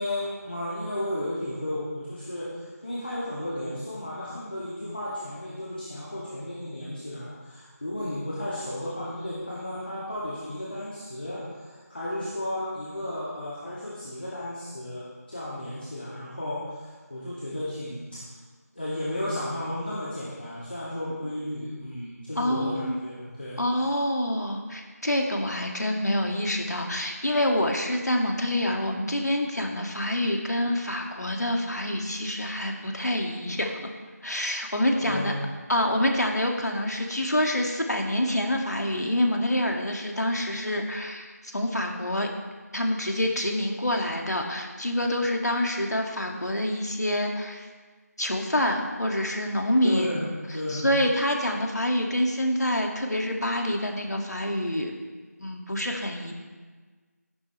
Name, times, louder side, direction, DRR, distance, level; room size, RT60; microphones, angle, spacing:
voice 1, 0.0-18.3 18.7-23.6 34.9-35.4 49.8-50.9, left 1 dB, 35° left, -9 dB, 2.4 m, -34 dB
voice 2, 22.4-23.0 23.6-33.9 34.2-35.3 35.7-42.3 42.7-47.7 48.2-50.1 50.7-54.9 55.4-56.3, left 1 dB, 75° left, 1 dB, 2.3 m, -27 dB
13.5 x 11.5 x 3.4 m, 1.4 s
figure-of-eight pair, 180°, 9 cm